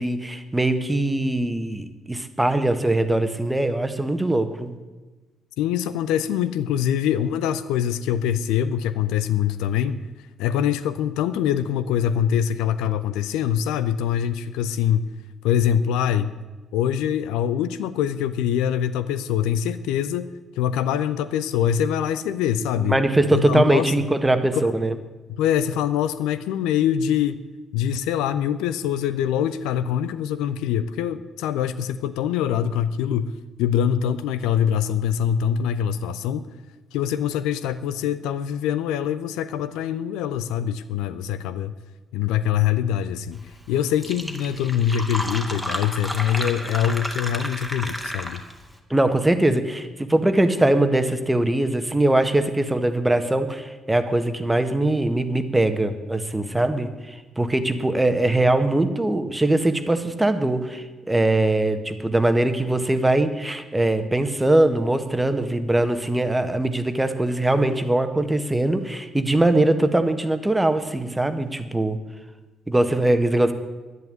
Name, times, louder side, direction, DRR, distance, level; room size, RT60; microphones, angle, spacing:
voice 1, 0.0-4.8 22.9-24.9 48.9-72.0 72.7-73.5, right 1 dB, 15° right, 9 dB, 1.6 m, -21 dB
voice 2, 5.6-10.0 10.4-15.1 15.4-16.3 16.7-20.3 20.6-23.0 23.3-23.9 24.5-24.7 25.3-27.4 27.7-36.5 36.9-41.7 42.1-48.4, left 9 dB, 65° left, 13 dB, 0.5 m, -24 dB
Fill (with liquid), 43.6-43.7 43.9-48.6, equal, 5° left, 2.4 m, -32 dB
11.0 x 10.5 x 9.6 m, 1.2 s
figure-of-eight pair, 45°, 0 cm